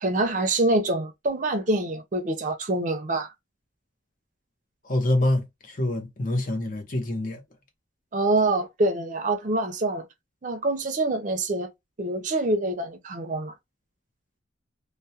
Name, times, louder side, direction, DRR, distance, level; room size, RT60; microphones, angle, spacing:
voice 1, 0.0-3.3 8.1-10.1 10.4-11.7 12.0-13.5, right 2 dB, 40° right, 0.5 m, -25 dB
voice 2, 4.8-7.4, left 1 dB, 45° left, 0.7 m, -26 dB
2.2 x 2.1 x 2.7 m
head